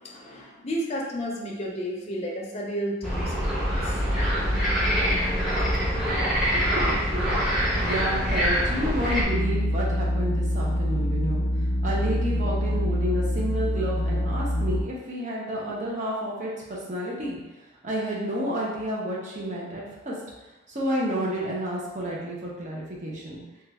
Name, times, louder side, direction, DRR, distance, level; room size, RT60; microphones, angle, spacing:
voice 1, 0.0-4.0, equal, 35° left, -2 dB, 0.5 m, -32 dB
sound 1, 3.0-9.2, equal, ahead, 0.8 m, -24 dB
voice 2, 6.5-7.3 7.8-11.4 11.8-17.4 17.8-20.2 20.7-23.4, equal, 40° right, -4 dB, 0.7 m, -30 dB
sound 2, 9.3-14.8, equal, 85° left, 0.5 m, -25 dB
3.1 x 2.3 x 3.3 m, 1.1 s
head